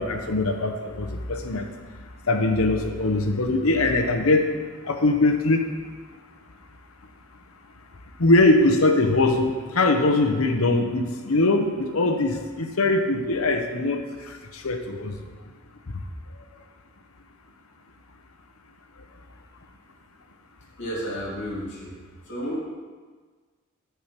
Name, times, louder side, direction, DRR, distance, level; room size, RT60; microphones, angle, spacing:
voice 1, 0.0-1.7 2.2-4.5 4.8-5.7 8.2-15.2 15.9-16.0, left 2 dB, 75° left, 5 dB, 1.0 m, -22 dB
voice 2, 20.8-21.9 22.2-22.6, equal, 55° left, -5 dB, 2.6 m, -31 dB
12.5 x 4.8 x 5.9 m, 1.5 s
head